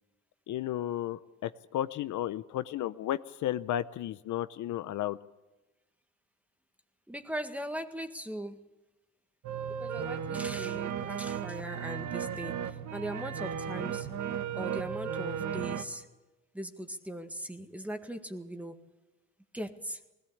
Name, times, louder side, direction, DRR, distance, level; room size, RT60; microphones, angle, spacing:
voice 1, 0.5-5.2, left 12 dB, 75° left, 13 dB, 0.7 m, -33 dB
voice 2, 7.1-8.6 9.8-14.1 14.6-16.1 16.5-18.8 19.5-20.0, equal, 5° right, 7 dB, 1.7 m, -39 dB
sound 1, 9.4-15.8, right 8 dB, 70° right, 1.5 m, -35 dB
20.0 x 17.5 x 8.6 m, 1.1 s
cardioid pair, 90°, 30 cm